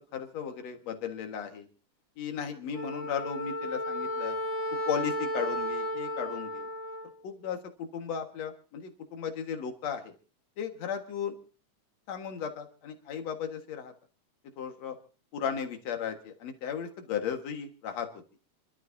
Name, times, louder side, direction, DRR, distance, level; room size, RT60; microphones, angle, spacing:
voice 1, 0.1-1.7 2.2-4.4 4.9-6.7 7.2-10.1 10.6-11.3 12.1-13.9 14.6-15.0 15.3-18.1, left 7 dB, 65° left, 5 dB, 2.7 m, -35 dB
Wind instrument woodwind instrument, 2.7-7.1, left 1 dB, 40° left, 3.1 m, -33 dB
29.5 x 12.5 x 2.7 m, 0.36 s
omnidirectional pair, 3.3 m